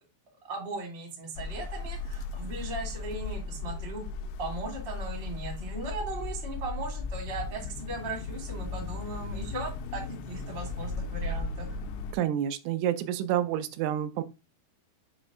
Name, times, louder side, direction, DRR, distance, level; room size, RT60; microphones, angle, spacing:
voice 1, 0.4-4.0 4.4-11.8, right 2 dB, 35° right, 0 dB, 0.8 m, -38 dB
sound 1, 1.4-12.1, left 3 dB, 80° left, 2.6 m, -36 dB
voice 2, 12.1-14.2, right 11 dB, 85° right, 10 dB, 3.0 m, -29 dB
7.1 x 3.2 x 4.9 m, 0.27 s
omnidirectional pair, 5.4 m